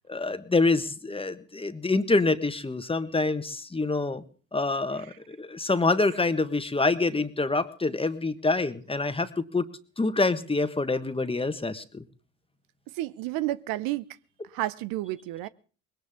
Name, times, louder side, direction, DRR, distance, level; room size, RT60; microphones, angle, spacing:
voice 1, 0.1-4.2 4.5-9.7 10.0-12.0, left 3 dB, 15° left, 1.5 m, -26 dB
voice 2, 13.0-14.2 14.5-15.5, right 16 dB, 70° right, 0.8 m, -31 dB
20.5 x 18.0 x 3.7 m
supercardioid pair, 70°, 36 cm